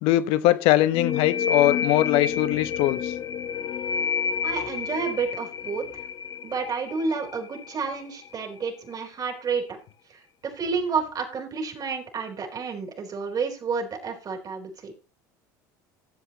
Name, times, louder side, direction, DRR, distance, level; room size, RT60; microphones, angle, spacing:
voice 1, 0.0-3.1, left 14 dB, 70° left, 13 dB, 1.1 m, -21 dB
sound 1, 0.9-8.4, left 7 dB, 45° left, 0.7 m, -29 dB
voice 2, 4.4-5.9 6.4-9.8 10.1-14.9, right 5 dB, 40° right, 2 dB, 4.0 m, -30 dB
15.5 x 7.9 x 3.1 m, 0.34 s
hypercardioid pair, 80°, 10 cm